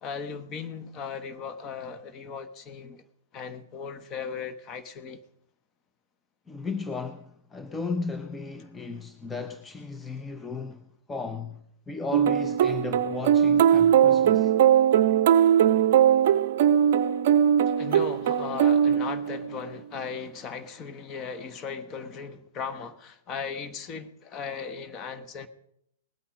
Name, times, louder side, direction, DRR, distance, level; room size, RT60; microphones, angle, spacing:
voice 1, 0.0-3.0 3.3-5.2 17.8-25.5, left 6 dB, 30° left, 1.3 m, -37 dB
voice 2, 6.5-14.5, left 4 dB, 10° left, 0.7 m, -35 dB
sound 1, 12.1-19.6, right 9 dB, 55° right, 0.6 m, -20 dB
19.0 x 8.6 x 5.4 m
figure-of-eight pair, 110°, 0 cm